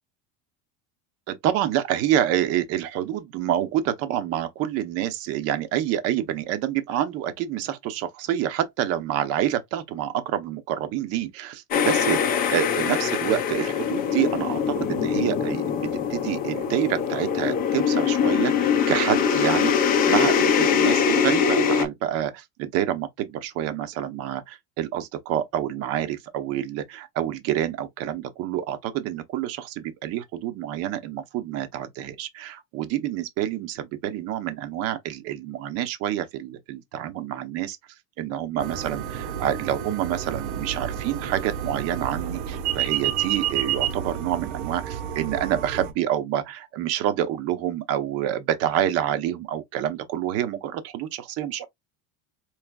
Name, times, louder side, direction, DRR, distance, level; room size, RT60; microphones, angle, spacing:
voice 1, 1.3-15.8 16.1-37.8 38.2-51.7, right 11 dB, 45° right, 0.7 m, -27 dB
sound 1, 11.7-21.9, left 7 dB, 25° left, 0.5 m, -23 dB
sound 2, 38.6-45.9, right 10 dB, 90° right, 1.0 m, -30 dB
4.6 x 3.1 x 2.2 m
cardioid pair, 175°, 36 cm